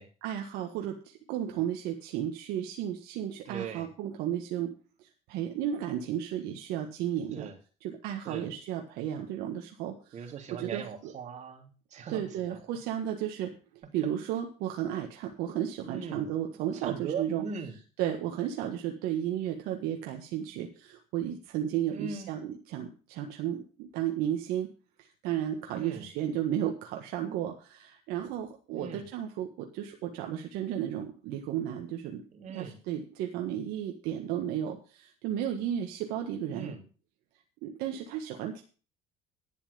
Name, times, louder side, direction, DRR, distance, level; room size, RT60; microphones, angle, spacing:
voice 1, 0.2-4.7 5.0-7.5 7.8-11.1 12.1-13.6 13.9-17.5 18.0-24.7 25.0-32.2 32.5-36.7 37.6-38.6, right 10 dB, 75° right, 3 dB, 1.6 m, -33 dB
voice 2, 3.4-3.9 7.3-7.5 8.2-8.5 10.1-12.6 15.8-16.3 16.5-17.7 21.9-22.3 25.7-26.1 28.7-29.1 32.3-32.8 36.5-36.8, right 6 dB, 50° right, 4 dB, 3.1 m, -39 dB
11.0 x 7.2 x 6.8 m, 0.38 s
supercardioid pair, 100°, 16 cm